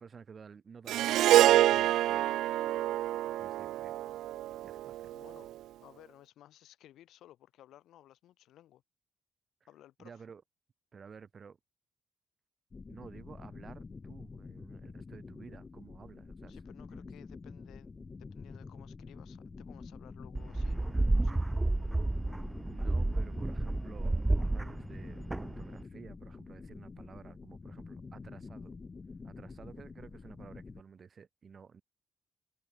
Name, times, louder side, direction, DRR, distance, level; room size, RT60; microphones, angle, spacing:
voice 1, 0.0-2.3 3.4-4.0 4.6-5.1 10.0-10.4 10.9-11.6 12.9-16.6 22.7-24.2 24.5-28.7 29.2-31.8, right 6 dB, 45° right, 4.9 m, -52 dB
Harp, 0.9-5.3, right 14 dB, 85° right, 0.5 m, -27 dB
voice 2, 5.1-5.5 5.8-8.8 9.7-10.2 16.5-17.9 18.2-21.4, left 13 dB, 80° left, 6.2 m, -58 dB
sound 1, 12.7-30.8, left 4 dB, 30° left, 1.0 m, -48 dB
sound 2, 20.3-25.8, right 2 dB, 15° right, 0.8 m, -31 dB
cardioid pair, 90°, 0 cm